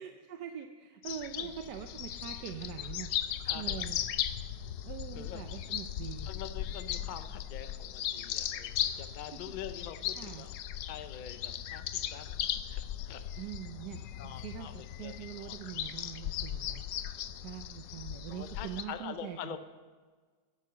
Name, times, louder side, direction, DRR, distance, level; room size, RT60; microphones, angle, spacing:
voice 1, 0.0-3.1 3.5-4.0 4.8-6.3 9.5-9.6 10.1-10.5 13.4-19.6, right 10 dB, 85° right, 6 dB, 1.3 m, -43 dB
sound 1, 1.0-18.8, left 11 dB, 80° left, 1.2 m, -37 dB
voice 2, 3.4-3.9 5.1-5.5 6.3-10.6 10.8-12.4 12.7-13.2 14.2-15.6 17.4-17.5 18.3-19.6, left 8 dB, 65° left, 9 dB, 0.4 m, -45 dB
9.7 x 9.0 x 6.7 m, 1.5 s
omnidirectional pair, 1.7 m